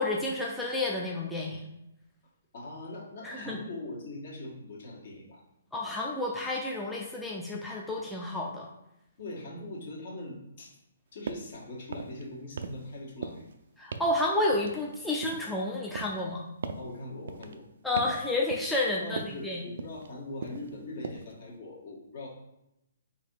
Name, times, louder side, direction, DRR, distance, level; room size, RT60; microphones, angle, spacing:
voice 1, 0.0-1.7 3.2-3.6 5.7-8.7 13.8-16.4 17.8-19.6, left 2 dB, 5° left, -4 dB, 0.5 m, -30 dB
voice 2, 2.5-5.4 9.2-10.7 11.1-13.5 16.7-17.6 19.0-22.3, left 2 dB, 55° left, -3 dB, 1.6 m, -41 dB
sound 1, 11.3-11.5 11.9-12.2 12.6-12.9 13.2-13.5 13.9-14.2 14.5-15.5 15.9-16.3 16.6-16.9 17.3-17.6 18.0-18.2 18.5-18.9 19.2-19.4 19.8-20.1 20.4-20.7 21.0-21.3, right 4 dB, 65° right, 0.4 m, -39 dB
4.0 x 2.7 x 4.7 m, 0.85 s
hypercardioid pair, 135°, 0 cm